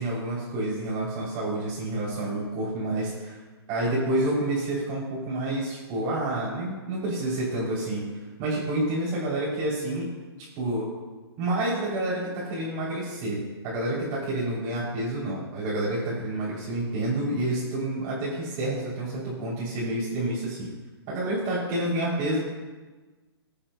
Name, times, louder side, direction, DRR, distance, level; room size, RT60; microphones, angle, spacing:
voice 1, 0.0-3.4 3.7-8.0 8.4-10.1 10.6-10.9 11.4-20.7 21.1-22.4, right 1 dB, 30° right, -7 dB, 3.1 m, -29 dB
19.0 x 8.6 x 2.2 m, 1.3 s
hypercardioid pair, 140°, 14 cm